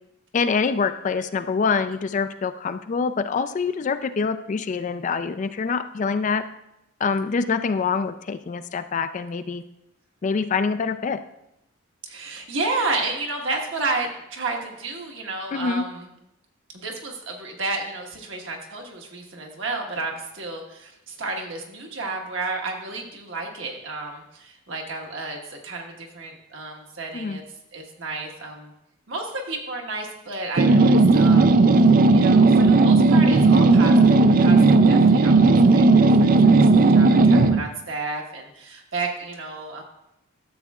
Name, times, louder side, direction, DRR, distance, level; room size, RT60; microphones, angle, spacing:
voice 1, 0.3-6.4 7.0-9.6 10.2-11.2 15.5-15.8 27.1-27.4 36.4-36.7, left 5 dB, 35° left, 11 dB, 0.3 m, -25 dB
voice 2, 12.0-16.1 16.7-27.4 27.7-28.7 29.1-39.8, right 3 dB, 65° right, 1 dB, 1.4 m, -32 dB
sound 1, 30.6-37.6, right 3 dB, 45° right, 0.4 m, -15 dB
12.5 x 7.4 x 2.4 m, 0.84 s
head